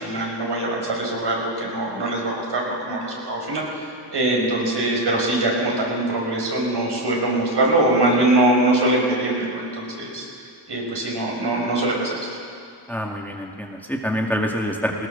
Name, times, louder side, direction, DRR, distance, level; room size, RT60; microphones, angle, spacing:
voice 1, 0.0-10.3 10.7-12.3, right 2 dB, 65° right, -2 dB, 6.1 m, -22 dB
voice 2, 12.9-15.1, equal, 5° left, 0 dB, 2.0 m, -26 dB
19.5 x 19.0 x 7.2 m, 2.4 s
cardioid pair, 70°, 45 cm